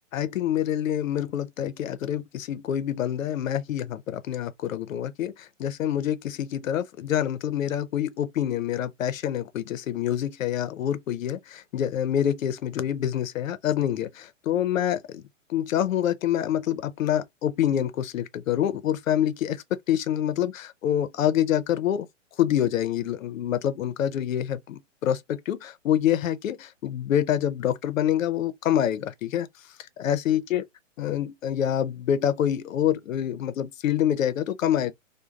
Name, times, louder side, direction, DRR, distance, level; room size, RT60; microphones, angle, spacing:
voice 1, 0.1-22.1 22.4-29.5 30.0-30.7 31.0-34.9, left 10 dB, 90° left, 0.6 m, -26 dB
2.4 x 2.2 x 3.0 m
hypercardioid pair, 155°, 39 cm